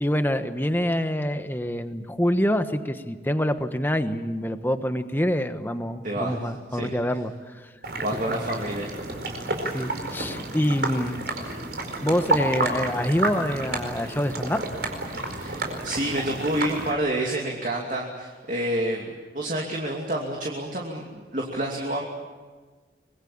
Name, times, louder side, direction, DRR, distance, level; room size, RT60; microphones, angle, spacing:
voice 1, 0.0-7.3 9.7-11.2 12.0-14.6, equal, 10° left, 9 dB, 1.2 m, -26 dB
voice 2, 6.0-6.4 6.7-6.9 8.0-8.9 9.2-9.4 15.3-22.0, right 1 dB, 45° right, -1 dB, 2.8 m, -29 dB
sound 1, 7.8-16.9, right 2 dB, 60° right, 4.8 m, -30 dB
25.5 x 22.0 x 8.7 m, 1.4 s
head